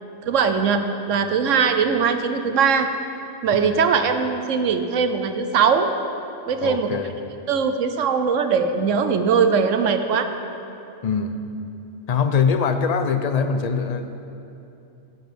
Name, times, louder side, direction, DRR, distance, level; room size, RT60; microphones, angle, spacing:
voice 1, 0.3-2.9 3.4-5.9 6.5-7.0 7.5-10.3, right 6 dB, 80° right, 8 dB, 1.1 m, -20 dB
voice 2, 6.6-7.1 11.0-11.4 12.1-14.2, left 6 dB, 40° left, 8 dB, 0.6 m, -23 dB
11.0 x 6.9 x 8.2 m, 2.8 s
omnidirectional pair, 1.3 m